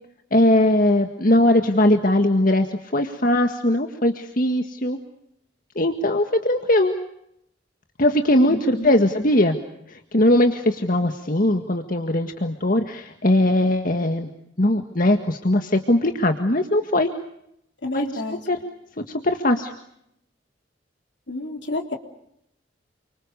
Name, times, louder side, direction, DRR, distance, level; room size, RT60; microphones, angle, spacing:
voice 1, 0.3-5.0 5.7-7.0 8.0-9.6 9.9-14.3 14.6-17.1 17.9-18.2 18.5-18.6 19.1-19.7, left 1 dB, 45° left, 6 dB, 1.8 m, -20 dB
voice 2, 8.5-9.3 17.8-18.4 21.3-22.0, left 1 dB, 70° left, 3 dB, 3.7 m, -30 dB
29.5 x 25.0 x 6.9 m, 0.76 s
head